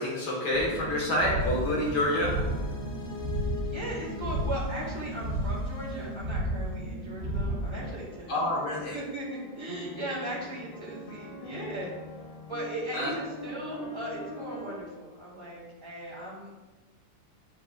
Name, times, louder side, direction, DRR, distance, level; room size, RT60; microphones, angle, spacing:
voice 1, 0.0-2.4 8.3-9.0 12.9-13.1, left 1 dB, 60° left, -4 dB, 2.0 m, -28 dB
sound 1, 0.5-7.9, right 1 dB, 55° right, 1.1 m, -33 dB
sound 2, 1.4-6.6 7.0-14.8, left 2 dB, 85° left, 0.5 m, -43 dB
voice 2, 3.6-8.3 8.9-12.0 12.5-16.5, right 1 dB, 15° right, -6 dB, 2.2 m, -38 dB
7.3 x 5.9 x 2.4 m, 1.2 s
omnidirectional pair, 2.1 m